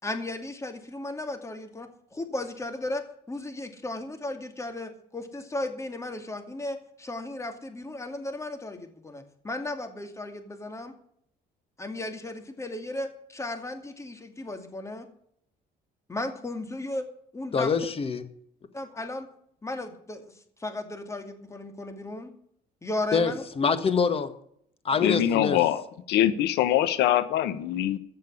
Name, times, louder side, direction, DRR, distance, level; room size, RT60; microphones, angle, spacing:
voice 1, 0.0-10.9 11.8-15.1 16.1-17.0 17.3-17.7 18.7-19.3 19.6-22.3 22.8-23.4 24.9-25.2, left 2 dB, 15° left, 7 dB, 2.5 m, -35 dB
voice 2, 17.5-18.2 23.1-24.3 24.8-25.6, left 5 dB, 35° left, 10 dB, 1.7 m, -25 dB
voice 3, 25.0-25.8 26.1-28.0, left 12 dB, 85° left, 12 dB, 1.1 m, -23 dB
15.0 x 6.7 x 9.8 m, 0.67 s
cardioid pair, 110°, 17 cm